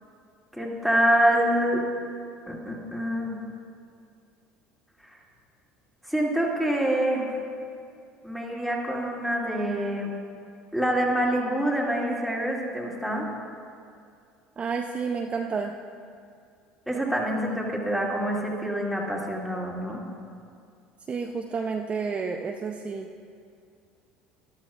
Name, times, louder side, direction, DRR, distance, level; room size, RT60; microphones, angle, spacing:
voice 1, 0.5-1.8 2.5-3.4 6.1-7.4 8.2-10.2 10.7-13.3 16.9-20.0, right 1 dB, ahead, -3 dB, 2.6 m, -26 dB
voice 2, 14.6-15.7 21.1-23.1, right 5 dB, 30° right, 3 dB, 0.6 m, -30 dB
13.0 x 12.0 x 2.5 m, 2.3 s
hypercardioid pair, 70°, 4 cm